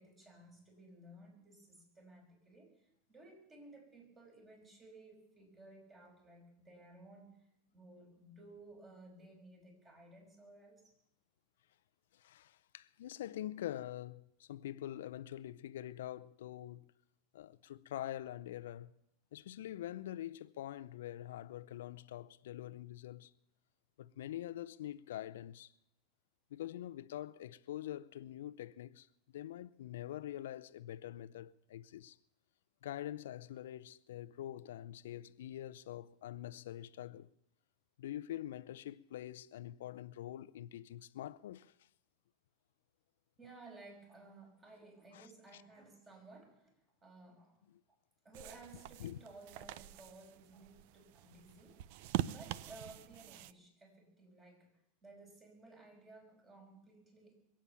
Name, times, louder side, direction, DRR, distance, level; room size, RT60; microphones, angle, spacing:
voice 1, 0.0-2.8 3.1-7.3 7.7-10.8 43.4-46.7 47.0-47.6 48.2-57.4, right 2 dB, 25° right, 5.8 m, -57 dB
voice 2, 12.1-16.9 17.3-18.9 19.3-23.3 24.0-25.7 26.5-32.2 32.8-37.3 38.0-41.7 45.1-45.3 45.5-45.6 47.7-47.8 49.0-49.2, left 12 dB, 85° left, 0.6 m, -45 dB
sound 1, 48.3-53.5, right 14 dB, 65° right, 0.5 m, -44 dB
23.0 x 8.8 x 7.0 m
supercardioid pair, 115°, 0 cm